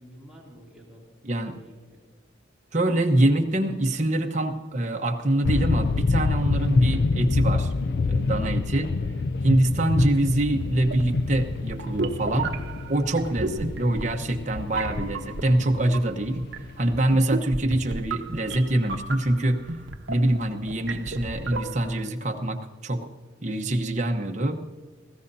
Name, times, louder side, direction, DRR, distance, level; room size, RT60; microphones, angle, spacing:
voice 1, 0.0-2.0, right 1 dB, 5° right, -5 dB, 2.8 m, -49 dB
voice 2, 2.7-7.7 8.0-8.9 9.4-12.5 12.9-16.4 16.8-19.6 20.1-23.1 23.4-24.6, right 1 dB, 40° right, 3 dB, 1.0 m, -24 dB
sound 1, 5.4-17.0, left 3 dB, 55° left, 0.4 m, -27 dB
sound 2, 9.9-22.1, right 2 dB, 65° right, 0.9 m, -34 dB
19.5 x 16.0 x 2.7 m, 1.4 s
head